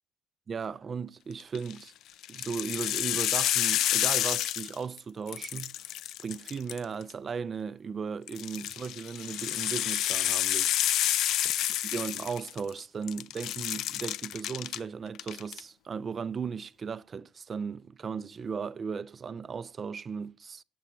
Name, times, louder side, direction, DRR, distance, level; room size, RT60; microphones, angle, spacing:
voice 1, 0.5-1.9 2.3-5.8 6.2-10.8 11.8-20.6, right 6 dB, 35° right, 0.5 m, -36 dB
sound 1, 1.4-1.7 2.2-5.0 5.3-7.1 8.3-12.8 13.1-14.8 15.1-15.6, left 12 dB, 65° left, 0.4 m, -29 dB
8.4 x 6.9 x 5.9 m
supercardioid pair, 80°, 0 cm